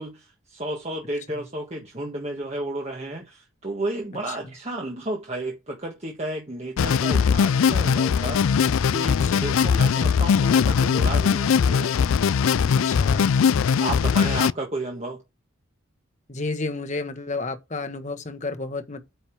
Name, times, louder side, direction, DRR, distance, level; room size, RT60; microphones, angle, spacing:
voice 1, 0.0-11.9 13.8-15.2, right 1 dB, 30° right, 1.3 m, -32 dB
sound 1, 6.8-14.5, left 6 dB, 80° left, 0.4 m, -20 dB
voice 2, 9.2-9.5 12.8-13.3 14.0-14.3 16.3-19.0, left 3 dB, 35° left, 1.2 m, -32 dB
9.1 x 5.3 x 4.6 m
head